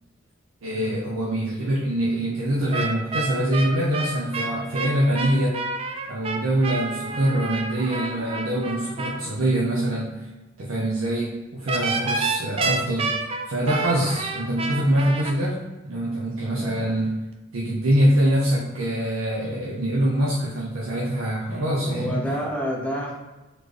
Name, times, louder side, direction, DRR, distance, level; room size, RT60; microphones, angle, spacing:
voice 1, 0.6-5.6 6.1-10.2 10.6-13.2 13.5-15.6 15.8-17.2 17.5-22.2, right 1 dB, 80° right, -5 dB, 0.7 m, -24 dB
sound 1, 2.7-9.2 11.7-15.3, right 3 dB, 30° right, 0.3 m, -29 dB
voice 2, 16.4-17.0 21.8-23.1, equal, 5° left, -2 dB, 0.7 m, -29 dB
4.2 x 3.2 x 3.2 m, 1.1 s
head